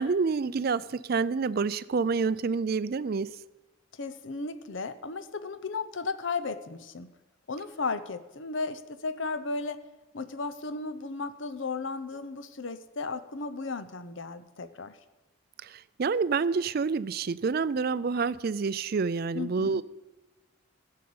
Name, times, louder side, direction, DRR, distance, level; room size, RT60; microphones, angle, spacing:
voice 1, 0.0-3.4 15.6-19.8, right 5 dB, 45° right, 0.4 m, -28 dB
voice 2, 4.0-7.1 7.5-9.8 10.1-15.0 19.3-19.8, left 4 dB, 60° left, 0.8 m, -35 dB
13.5 x 6.6 x 8.6 m
head